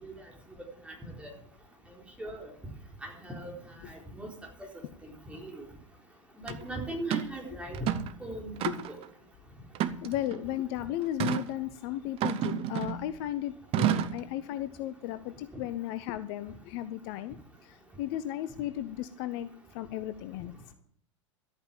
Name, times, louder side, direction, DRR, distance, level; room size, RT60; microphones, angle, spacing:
voice 1, 0.8-1.3 2.2-2.5 3.0-3.5 3.9-4.3 5.0-5.7 6.4-7.9 8.2-8.6 8.9-9.0, right 1 dB, 5° right, 0 dB, 4.0 m, -39 dB
sound 1, 6.5-6.6 7.1-7.3 7.7-8.2 8.6-9.1 9.7-10.4 11.2-11.5 12.2-13.1 13.7-14.2, right 11 dB, 35° right, 0.9 m, -30 dB
voice 2, 10.0-17.4 17.6-20.5, left 13 dB, 50° left, 13 dB, 0.8 m, -35 dB
12.5 x 8.8 x 7.3 m, 0.62 s
figure-of-eight pair, 90°, 16 cm